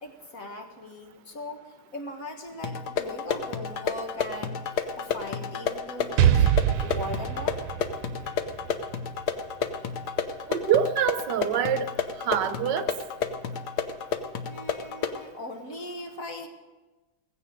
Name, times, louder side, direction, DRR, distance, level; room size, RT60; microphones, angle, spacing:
voice 1, 0.0-4.6 4.9-6.5 6.8-7.6 14.5-16.5, left 1 dB, 45° left, 4 dB, 1.8 m, -39 dB
sound 1, 2.6-15.2, left 6 dB, 60° left, 1.3 m, -31 dB
Explosion, 6.2-9.9, right 10 dB, 90° right, 1.5 m, -25 dB
voice 2, 10.5-11.9 12.2-12.9, right 8 dB, 65° right, 11 dB, 1.4 m, -25 dB
16.5 x 15.5 x 5.1 m, 1.2 s
omnidirectional pair, 2.2 m